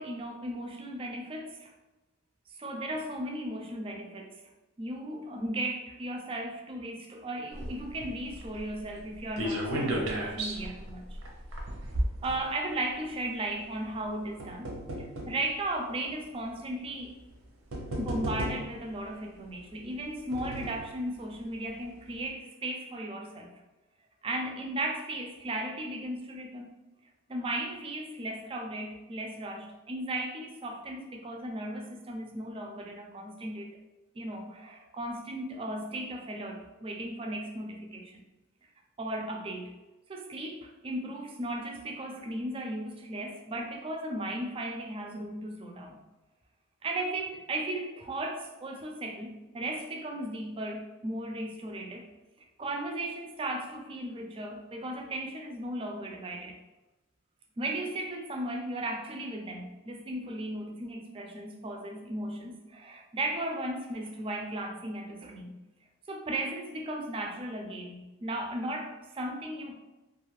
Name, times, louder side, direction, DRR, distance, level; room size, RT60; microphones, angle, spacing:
voice 1, 0.0-1.7 2.6-4.4 4.8-11.2 12.2-14.7 15.3-17.2 18.0-23.5 24.2-26.7 27.3-33.7 34.1-38.2 39.0-39.7 40.1-46.0 46.8-52.1 52.4-56.6 57.6-65.6 66.1-69.7, right 1 dB, 25° right, 2 dB, 0.3 m, -36 dB
sound 1, 7.5-13.0 13.8-15.4 16.2-16.3 17.3-17.4 17.7-18.9 19.8-20.9 21.4-21.5 21.7-21.8, right 1 dB, 75° right, 0.6 m, -35 dB
2.4 x 2.4 x 3.2 m, 1.1 s
head